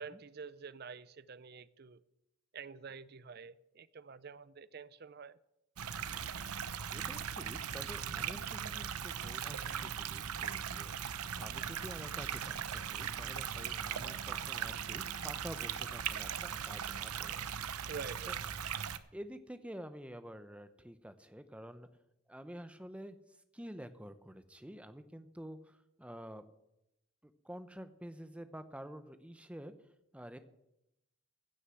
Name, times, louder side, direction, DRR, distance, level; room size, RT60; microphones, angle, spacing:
voice 1, 0.0-2.0 2.5-5.4 17.9-18.4, right 5 dB, 45° right, 0.5 m, -47 dB
sound 1, 5.8-19.0, right 8 dB, 90° right, 0.8 m, -39 dB
voice 2, 6.9-17.7 18.3-18.4 19.1-21.9 22.3-26.4 27.2-29.7 30.1-30.4, equal, 5° right, 0.7 m, -49 dB
15.5 x 6.5 x 7.7 m
head